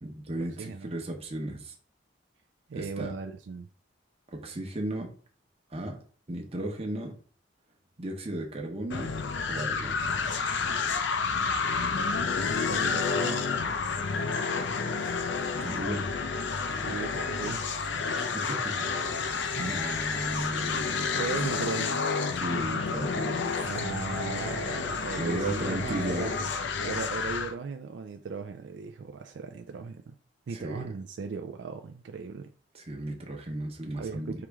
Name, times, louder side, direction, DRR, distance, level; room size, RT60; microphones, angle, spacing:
voice 1, 0.0-1.7 2.7-3.1 4.3-5.1 5.7-6.0 6.3-7.1 8.0-9.1 9.5-10.0 15.5-16.1 18.2-18.7 19.1-21.1 22.4-23.7 25.2-26.4 30.5-30.9 32.7-34.5, right 1 dB, 35° right, 0.9 m, -35 dB
voice 2, 0.6-0.9 2.7-3.7 12.7-13.5 16.7-17.8 19.5-19.7 21.1-22.1 23.7-26.3 26.8-30.2 30.5-32.5 34.0-34.5, right 5 dB, 70° right, 0.4 m, -37 dB
sound 1, 8.9-27.5, left 5 dB, 75° left, 0.5 m, -30 dB
4.8 x 3.1 x 3.5 m
head